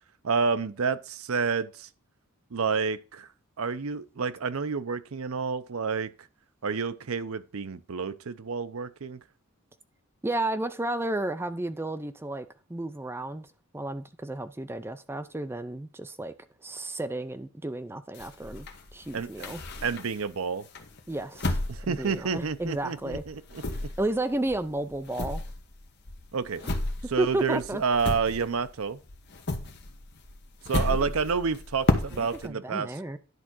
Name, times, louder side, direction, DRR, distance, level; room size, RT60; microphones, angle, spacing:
voice 1, 0.2-1.9 2.5-3.3 3.6-6.1 6.6-9.2 19.1-19.5 19.8-20.7 21.7-23.6 26.3-26.6 27.1-29.0 30.7-33.0, right 5 dB, 70° right, 0.6 m, -29 dB
voice 2, 10.2-13.5 13.7-16.3 16.6-19.6 21.1-21.6 21.8-23.2 23.7-25.4 27.0-27.8 30.9-31.1 32.1-33.2, right 1 dB, 10° right, 0.4 m, -32 dB
sound 1, 18.1-20.3 20.7-22.9 23.1-28.8 29.1-32.5, left 2 dB, 50° left, 1.1 m, -32 dB
10.5 x 3.7 x 6.0 m
head